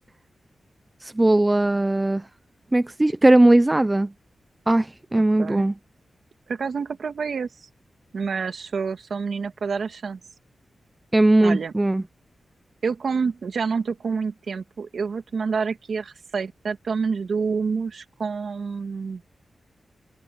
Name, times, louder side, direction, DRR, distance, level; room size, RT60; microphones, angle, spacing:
voice 1, 1.0-2.2 2.7-4.1 4.7-5.7 11.1-12.0, right 1 dB, 15° right, 0.5 m, -19 dB
voice 2, 6.5-7.7 8.1-10.2 11.4-11.7 12.8-19.2, right 5 dB, 60° right, 2.3 m, -28 dB
wide cardioid pair, 145°, 0 cm